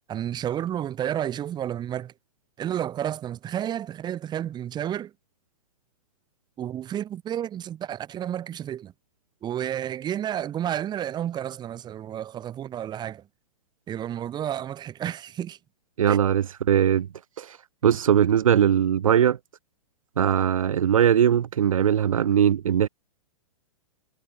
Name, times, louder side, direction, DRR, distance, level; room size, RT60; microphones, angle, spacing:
voice 1, 0.1-2.1 2.6-5.1 6.6-8.9 9.4-13.2 13.9-15.6 16.1-16.2, right 10 dB, 25° right, 4.5 m, -31 dB
voice 2, 16.0-17.1 17.4-17.6 17.8-19.4 20.2-22.9, right 9 dB, 65° right, 2.3 m, -20 dB
figure-of-eight pair, 110°, 18 cm